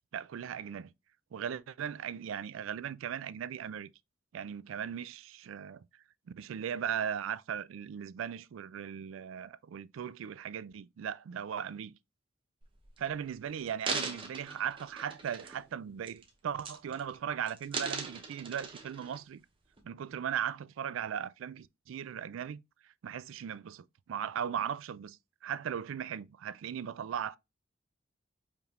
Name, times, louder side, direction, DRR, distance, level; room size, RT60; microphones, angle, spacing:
voice 1, 0.1-0.9 1.3-3.9 4.3-5.8 6.4-11.9 13.0-19.4 19.8-22.6 23.0-27.4, right 8 dB, 70° right, 0.3 m, -38 dB
sound 1, 12.6-13.0 13.6-15.7 16.1-16.3 16.6-17.2 17.5-19.2 19.8-19.9, right 4 dB, 25° right, 0.8 m, -39 dB
5.0 x 3.3 x 2.4 m
head